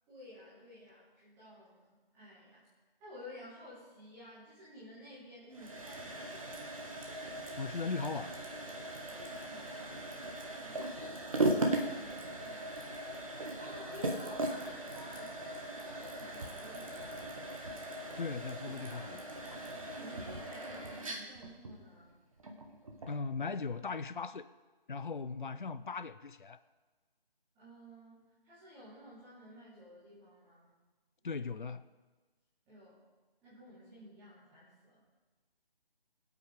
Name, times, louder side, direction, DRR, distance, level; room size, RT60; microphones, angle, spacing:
voice 1, 0.1-1.8 2.1-2.7 3.0-6.8 9.1-17.4 19.4-22.2 27.5-30.7 32.7-33.0 33.4-35.0, equal, 10° right, 3.2 m, -54 dB
sound 1, 5.5-23.2, right 1 dB, 35° right, 1.5 m, -39 dB
voice 2, 7.6-8.4 18.2-19.3 23.1-24.5 24.9-26.6 31.2-31.9, left 4 dB, 55° left, 0.6 m, -38 dB
24.0 x 8.4 x 3.5 m
figure-of-eight pair, 155°, 29 cm